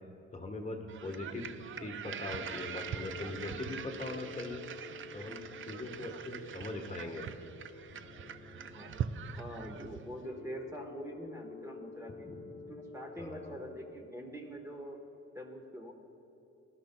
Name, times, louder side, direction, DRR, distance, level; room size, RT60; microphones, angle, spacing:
voice 1, 0.3-1.5 1.8-4.6 5.1-7.3 12.3-12.4 13.2-13.6, left 2 dB, 25° left, 2 dB, 1.2 m, -41 dB
sound 1, 0.9-10.2, right 8 dB, 40° right, 0.5 m, -43 dB
sound 2, 2.4-13.9, left 3 dB, 45° left, 1.1 m, -50 dB
voice 2, 9.4-12.3 12.7-15.0 15.3-15.9, equal, 10° right, 2 dB, 1.1 m, -44 dB
18.0 x 12.0 x 2.2 m, 2.8 s
cardioid pair, 90°, 30 cm